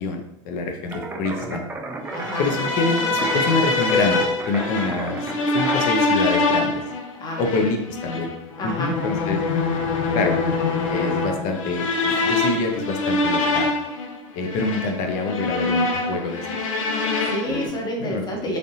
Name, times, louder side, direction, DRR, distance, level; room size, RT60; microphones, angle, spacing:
voice 1, 0.0-1.7 2.4-5.2 5.5-6.8 7.4-8.3 8.6-9.4 10.1-10.4 10.9-13.7 14.3-16.5 17.5-17.7 18.0-18.2, left 3 dB, 55° left, 4 dB, 0.7 m, -26 dB
sound 1, 0.9-5.9, right 2 dB, 10° right, 0.4 m, -33 dB
voice 2, 2.1-2.5 7.2-7.6 8.6-8.9 17.0-18.6, equal, 25° left, 0 dB, 0.9 m, -29 dB
sound 2, 2.2-17.7, left 3 dB, 90° left, 0.6 m, -24 dB
3.2 x 2.7 x 2.7 m, 0.80 s
hypercardioid pair, 110°, 17 cm